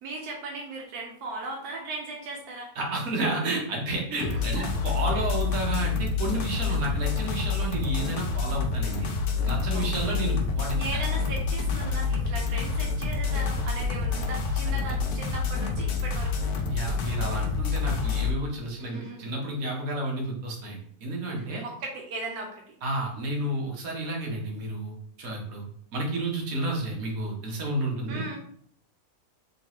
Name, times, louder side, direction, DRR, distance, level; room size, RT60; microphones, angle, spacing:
voice 1, 0.0-2.7 4.1-5.2 9.7-10.2 10.8-16.5 18.8-19.3 21.4-22.7 28.1-28.4, right 3 dB, 90° right, 0 dB, 1.2 m, -38 dB
voice 2, 2.7-9.1 9.4-11.0 14.6-14.8 16.7-21.6 22.8-25.6 25.9-28.2, right 2 dB, 65° right, -1 dB, 1.4 m, -31 dB
sound 1, 4.2-18.3, left 5 dB, 80° left, 1.1 m, -28 dB
3.7 x 3.1 x 2.9 m, 0.62 s
omnidirectional pair, 1.6 m